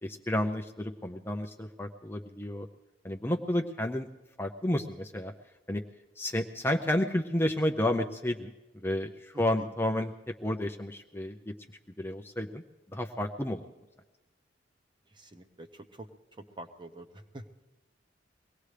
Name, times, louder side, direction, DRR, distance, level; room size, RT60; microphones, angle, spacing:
voice 1, 0.0-2.7 3.0-4.1 4.4-5.3 5.7-5.8 6.2-8.5 8.8-10.1 10.4-11.4 12.0-12.6 12.9-13.7, left 1 dB, 10° left, 4 dB, 0.6 m, -31 dB
voice 2, 9.3-9.7 15.1-16.1 16.4-17.1 17.3-17.5, right 1 dB, 25° right, 7 dB, 0.9 m, -46 dB
23.0 x 18.5 x 3.3 m, 1.1 s
head